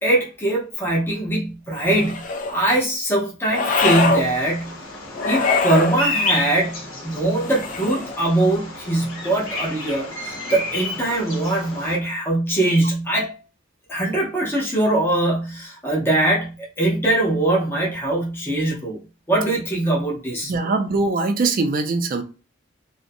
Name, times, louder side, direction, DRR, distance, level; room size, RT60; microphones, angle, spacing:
voice 1, 0.0-4.8 5.2-13.3 13.9-19.0 19.3-20.7, right 1 dB, 10° left, 0.7 m, -22 dB
sound 1, 1.8-2.6 3.5-4.3 5.1-6.0 7.3-8.2, left 3 dB, 40° left, 0.4 m, -23 dB
Bird vocalization bird call bird song, 3.8-12.0, left 3 dB, 80° left, 0.8 m, -30 dB
voice 2, 20.5-22.2, right 3 dB, 45° right, 0.4 m, -22 dB
2.5 x 2.1 x 2.6 m
head